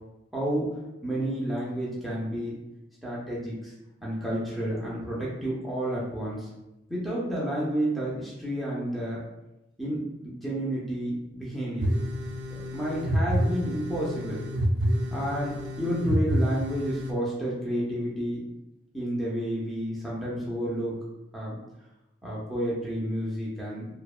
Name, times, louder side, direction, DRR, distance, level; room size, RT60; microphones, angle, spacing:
voice 1, 0.3-0.7 1.0-2.5 3.0-3.7 4.0-6.5 6.9-9.2 9.8-11.9 12.5-14.4 15.1-18.4 18.9-21.0 21.3-21.6 22.2-23.9, right 1 dB, ahead, -7 dB, 0.4 m, -30 dB
sound 1, 11.8-17.1, equal, 65° right, 0.3 m, -28 dB
2.7 x 2.1 x 2.3 m, 0.93 s
head